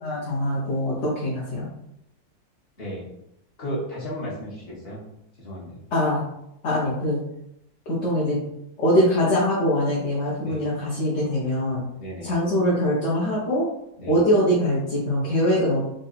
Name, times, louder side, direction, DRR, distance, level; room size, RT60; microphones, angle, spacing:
voice 1, 0.0-1.7 5.9-6.2 6.6-7.2 7.9-8.4 8.8-11.8 12.2-13.7 14.1-15.9, equal, 50° left, -6 dB, 0.9 m, -23 dB
voice 2, 3.6-5.0 5.4-5.8 10.4-10.6 12.0-12.3 14.0-14.2, equal, 35° left, -6 dB, 1.4 m, -34 dB
3.8 x 2.6 x 4.1 m, 0.81 s
omnidirectional pair, 2.0 m